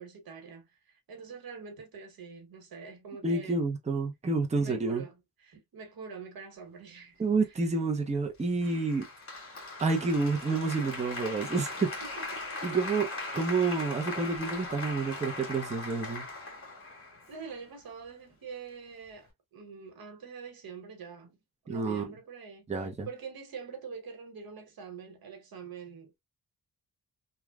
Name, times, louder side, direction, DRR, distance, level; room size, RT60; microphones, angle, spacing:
voice 1, 0.0-3.7 4.5-7.2 11.8-12.8 17.3-21.4 21.6-26.2, right 5 dB, 80° right, 1.2 m, -45 dB
voice 2, 3.2-5.0 7.2-9.1 9.8-11.9 12.6-13.1 13.3-16.2 21.7-22.1 22.7-23.1, right 3 dB, 20° right, 0.7 m, -29 dB
Applause, 8.6-17.6, left 3 dB, 40° left, 1.7 m, -39 dB
3.1 x 2.4 x 2.3 m
cardioid pair, 95°, 36 cm